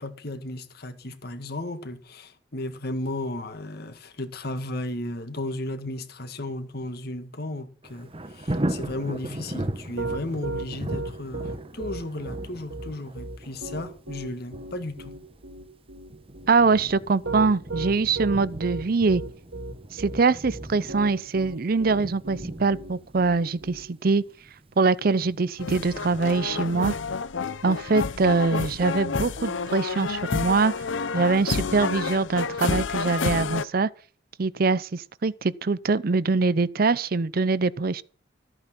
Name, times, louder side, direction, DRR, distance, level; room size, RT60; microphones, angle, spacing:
voice 1, 0.0-15.1, left 1 dB, 55° left, 1.7 m, -34 dB
Thunder, 7.8-26.6 27.1-27.2, right 1 dB, 30° right, 1.1 m, -38 dB
Piano, 10.0-23.8, right 2 dB, 75° right, 3.1 m, -35 dB
voice 2, 16.5-19.2 19.9-24.2 24.8-27.0 27.6-30.7 31.1-33.9 34.4-38.0, right 4 dB, 50° right, 0.5 m, -23 dB
sound 1, 25.6-33.6, left 4 dB, 80° left, 0.7 m, -29 dB
14.0 x 8.8 x 6.0 m
head